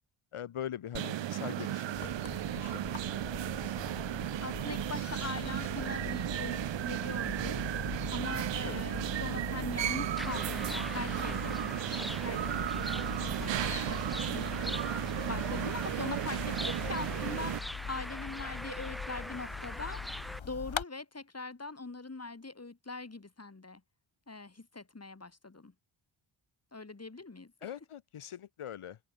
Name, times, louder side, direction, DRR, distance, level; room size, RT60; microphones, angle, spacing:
voice 1, 0.3-2.1 2.5-3.0 8.6-8.8 27.6-29.0, left 10 dB, 90° left, 3.0 m, -42 dB
sound 1, 0.9-17.6, right 13 dB, 60° right, 0.6 m, -35 dB
sound 2, 1.9-20.8, left 7 dB, 65° left, 5.2 m, -42 dB
voice 2, 4.4-7.6 8.1-12.4 12.7-14.7 15.3-17.5 17.9-20.0 20.4-23.8 24.3-25.7 26.7-27.7, left 3 dB, 30° left, 5.3 m, -42 dB
sound 3, 10.2-20.4, equal, ahead, 1.3 m, -42 dB
cardioid pair, 65°, 49 cm